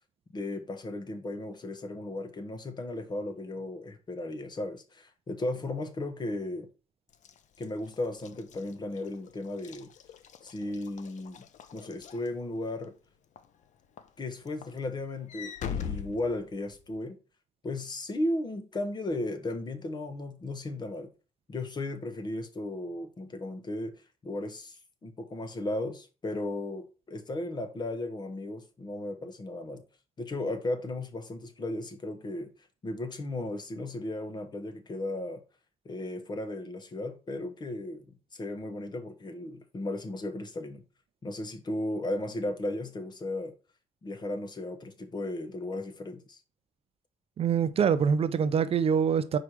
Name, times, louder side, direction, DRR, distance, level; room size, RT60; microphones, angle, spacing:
voice 1, 0.3-6.7 7.6-9.9 10.4-11.5 11.7-12.9 14.2-17.2 17.6-21.1 21.5-23.9 24.2-29.8 30.2-32.5 32.8-35.4 35.8-38.0 38.3-40.8 41.2-43.5 44.0-46.4, left 2 dB, 30° left, 1.3 m, -35 dB
Walk footsteps / Slam, 7.1-12.9 13.4-13.6 14.0-17.0, left 8 dB, 65° left, 0.8 m, -42 dB
voice 2, 47.4-49.4, right 7 dB, 45° right, 0.5 m, -25 dB
4.9 x 4.7 x 6.0 m
cardioid pair, 125°, 14 cm